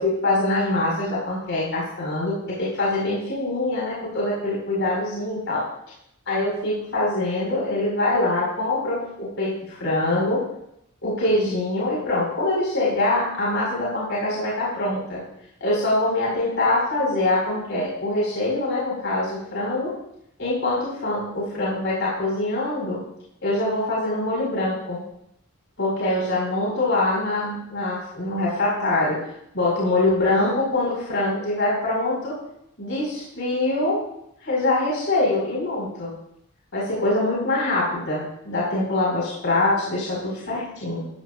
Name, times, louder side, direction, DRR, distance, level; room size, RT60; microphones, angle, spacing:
voice 1, 0.0-5.6 6.3-10.4 11.0-15.2 15.6-19.9 20.4-23.0 23.4-25.0 25.8-29.2 29.5-32.3 32.8-34.0 34.4-36.1 36.7-41.0, left 2 dB, 60° left, -6 dB, 5.1 m, -24 dB
14.5 x 14.5 x 2.6 m, 0.75 s
head